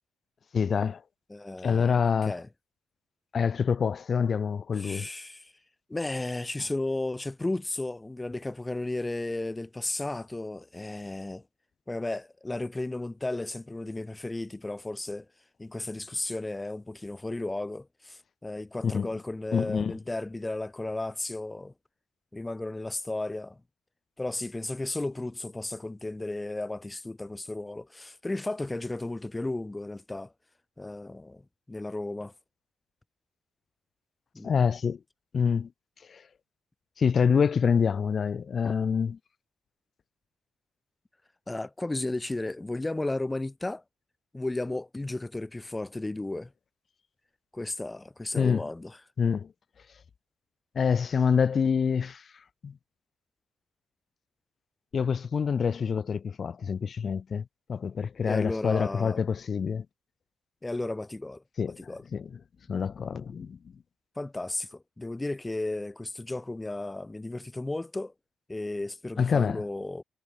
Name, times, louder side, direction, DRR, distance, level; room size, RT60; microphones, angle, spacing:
voice 1, 0.5-1.0 1.6-2.3 3.3-5.1 18.8-19.1 19.5-19.9 34.4-35.0 35.3-35.7 36.1-36.2 37.0-39.2 48.3-48.7 49.2-49.5 50.8-52.2 52.6-52.7 54.9-57.4 57.7-59.8 61.6-62.3 62.7-63.6 69.2-69.6, left 6 dB, 45° left, 0.6 m, -26 dB
voice 2, 1.3-2.5 4.8-5.5 5.9-11.4 11.9-15.3 15.6-21.7 22.3-23.6 24.2-30.3 30.8-31.4 31.7-32.3 34.3-34.6 41.5-43.8 44.3-46.5 47.5-49.0 58.2-59.2 60.6-62.0 64.2-68.1 68.5-70.0, left 2 dB, 15° left, 4.1 m, -34 dB
cardioid pair, 90°, 0 cm